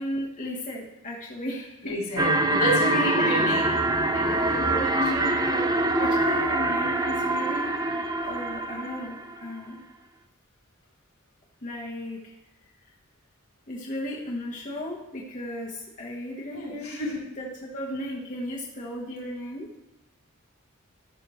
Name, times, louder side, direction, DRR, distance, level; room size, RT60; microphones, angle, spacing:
voice 1, 0.0-2.0 3.2-3.3 4.4-7.7 8.2-9.8 11.6-12.3 13.7-17.0 17.4-19.7, left 1 dB, 35° left, -3 dB, 1.2 m, -35 dB
voice 2, 1.8-3.8 4.1-4.8 16.5-17.2, left 1 dB, 85° left, -4 dB, 3.5 m, -30 dB
sound 1, 2.2-9.4, right 2 dB, 20° right, 0.6 m, -24 dB
13.0 x 6.2 x 3.1 m, 0.96 s
head